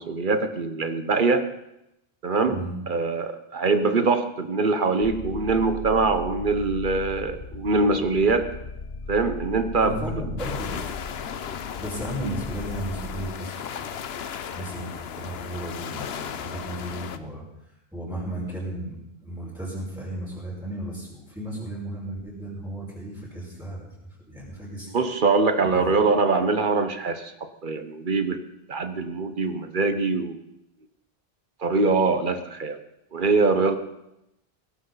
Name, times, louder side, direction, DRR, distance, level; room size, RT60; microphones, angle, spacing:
voice 1, 0.0-1.5 2.2-2.6 2.9-8.5 9.1-10.0 24.9-28.4 28.7-30.4 31.6-32.8 33.1-33.8, right 4 dB, 55° right, 9 dB, 1.2 m, -23 dB
sound 1, 5.0-13.3, left 3 dB, 50° left, 0.9 m, -37 dB
voice 2, 9.8-10.9 11.7-13.9 14.5-17.4 17.9-18.9 19.2-23.9 24.3-24.9 25.6-25.9 29.0-29.1, right 1 dB, 5° right, -9 dB, 5.4 m, -34 dB
sound 2, 10.4-17.2, left 8 dB, 80° left, 1.0 m, -36 dB
17.5 x 16.0 x 4.1 m, 0.85 s
omnidirectional pair, 1.0 m